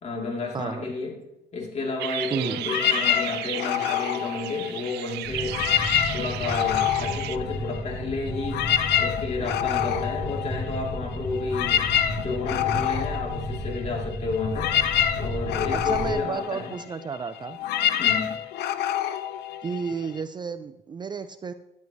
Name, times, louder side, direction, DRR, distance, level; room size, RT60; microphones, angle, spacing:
voice 1, 0.0-1.2 1.5-5.6 6.1-8.7 9.0-11.8 12.1-14.8 15.1-16.7 18.0-18.4, left 3 dB, 40° left, -1 dB, 3.3 m, -31 dB
voice 2, 0.5-0.9 2.3-2.6 15.7-17.6 19.6-21.5, right 5 dB, 25° right, 10 dB, 0.5 m, -32 dB
sound 1, 2.0-7.4, right 15 dB, 80° right, 0.5 m, -34 dB
sound 2, 2.6-5.1 5.4-8.0 8.3-20.2, left 10 dB, 75° left, 0.8 m, -27 dB
sound 3, 5.2-16.1, left 1 dB, 5° right, 4.7 m, -33 dB
13.5 x 11.0 x 3.2 m, 0.92 s
cardioid pair, 110°, 17 cm